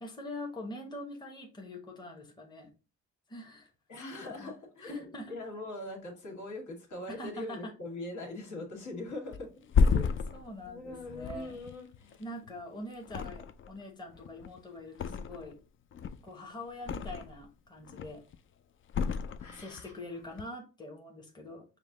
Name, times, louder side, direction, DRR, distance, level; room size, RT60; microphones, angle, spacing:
voice 1, 0.0-2.7 3.3-3.7 4.4-4.5 4.8-5.3 7.1-7.7 10.3-11.6 12.2-15.6 16.2-18.2 19.5-21.6, left 1 dB, 15° left, 1 dB, 1.0 m, -44 dB
voice 2, 3.9-5.0 5.3-10.3 10.7-12.2 19.4-19.9, left 2 dB, 70° left, 1 dB, 1.8 m, -42 dB
Thump thud, 9.3-12.6 13.0-13.8 14.1-15.6 15.9-17.5 17.8-18.4 18.9-19.9 20.2-20.4, left 5 dB, 45° left, 0.4 m, -31 dB
5.2 x 2.1 x 3.7 m, 0.32 s
cardioid pair, 90°, 30 cm